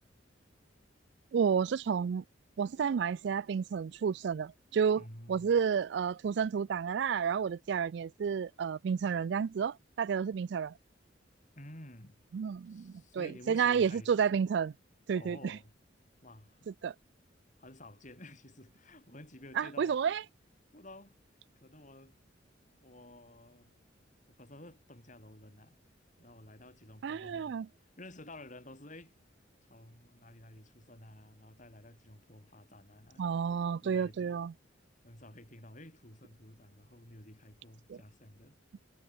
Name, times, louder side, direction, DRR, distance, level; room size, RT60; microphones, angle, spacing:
voice 1, 1.3-2.2 2.6-5.0 5.3-10.7 12.3-14.7 15.1-15.6 16.8-16.9 19.6-20.2 27.0-27.7 33.2-34.5 37.9-38.0, right 7 dB, 60° right, 0.3 m, -31 dB
voice 2, 5.0-5.5 11.6-12.2 12.6-14.2 15.1-15.7 16.2-16.7 17.6-20.0 20.7-21.1 21.6-22.2 22.8-23.7 24.3-25.8 26.2-29.1 29.7-33.3 33.8-34.4 35.0-38.6, left 1 dB, 40° left, 7.9 m, -52 dB
head